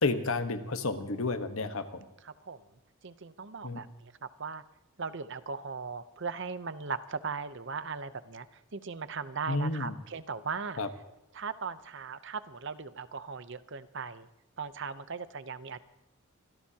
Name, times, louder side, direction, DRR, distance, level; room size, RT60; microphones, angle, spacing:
voice 1, 0.0-2.1 3.6-3.8 9.5-9.9 10.8-10.9, left 3 dB, 70° left, 8 dB, 1.2 m, -31 dB
voice 2, 2.2-2.6 3.0-4.6 5.0-10.8 11.3-14.3 14.6-15.8, right 5 dB, 55° right, 13 dB, 0.7 m, -38 dB
25.5 x 16.5 x 2.9 m, 0.93 s
head